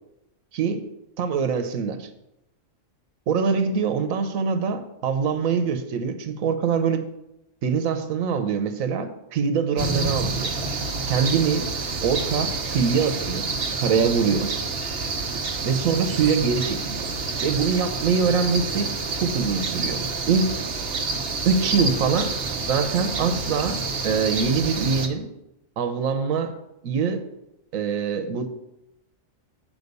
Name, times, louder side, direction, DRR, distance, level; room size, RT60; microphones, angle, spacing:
voice 1, 0.5-0.8 1.2-2.1 3.3-7.0 7.6-10.5 11.1-11.6 12.0-13.5 13.8-14.5 15.6-17.0 17.4-20.6 21.4-22.3 22.7-25.3 25.8-26.5 26.8-27.2 27.7-28.5, right 5 dB, 85° right, 8 dB, 1.2 m, -24 dB
sound 1, 9.8-25.1, right 3 dB, 50° right, 1.0 m, -28 dB
8.2 x 5.7 x 5.3 m, 0.88 s
omnidirectional pair, 1.4 m